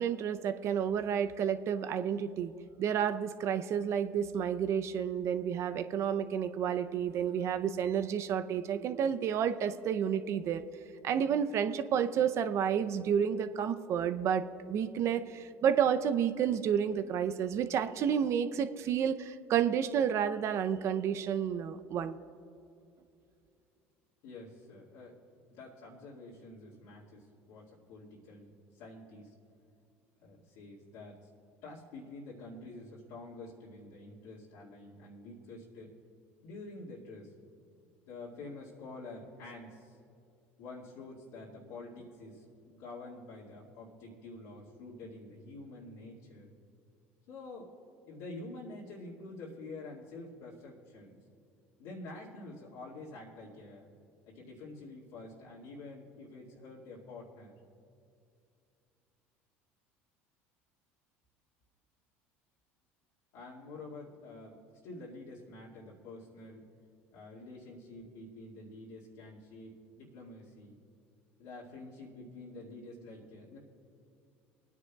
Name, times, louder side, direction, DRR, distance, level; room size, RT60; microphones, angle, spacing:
voice 1, 0.0-2.5 2.8-10.6 11.0-14.4 14.7-22.2, right 8 dB, 55° right, 10 dB, 0.6 m, -30 dB
voice 2, 24.2-25.2 25.5-28.5 28.7-29.3 30.2-31.3 31.6-35.9 36.4-37.3 38.1-40.0 40.6-46.5 47.3-47.7 48.1-51.2 51.8-53.9 54.3-57.5 63.3-66.6 67.1-70.8 71.4-73.6, left 2 dB, 75° left, -7 dB, 2.2 m, -48 dB
27.0 x 9.7 x 2.4 m, 2.5 s
supercardioid pair, 80°, 6 cm